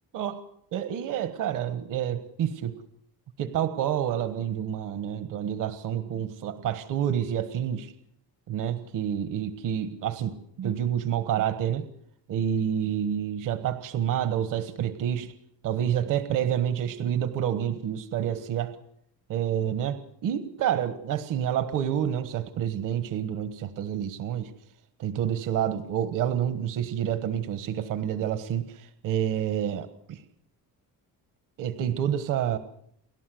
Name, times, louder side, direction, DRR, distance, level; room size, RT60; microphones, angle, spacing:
voice 1, 0.7-2.7 3.4-7.9 8.5-11.9 12.3-15.3 15.6-18.8 19.3-24.5 25.0-30.2 31.6-32.6, right 9 dB, 55° right, 12 dB, 1.3 m, -28 dB
29.5 x 12.0 x 7.8 m, 0.71 s
cardioid pair, 175°, 37 cm